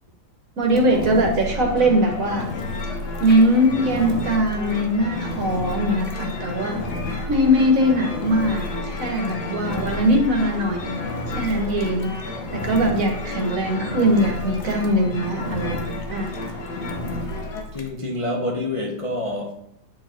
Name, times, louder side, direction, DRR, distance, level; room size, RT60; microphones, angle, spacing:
Engine, 0.6-17.9, left 2 dB, 50° left, 1.2 m, -33 dB
voice 1, 0.6-2.5 3.2-6.8 7.3-11.0 11.3-12.1 12.5-15.8 16.1-16.3, equal, 55° right, 1.7 m, -21 dB
sound 1, 1.4-17.6, left 2 dB, 70° left, 1.9 m, -34 dB
voice 2, 17.7-19.5, left 1 dB, 25° left, 0.7 m, -27 dB
8.8 x 4.8 x 4.4 m
omnidirectional pair, 1.8 m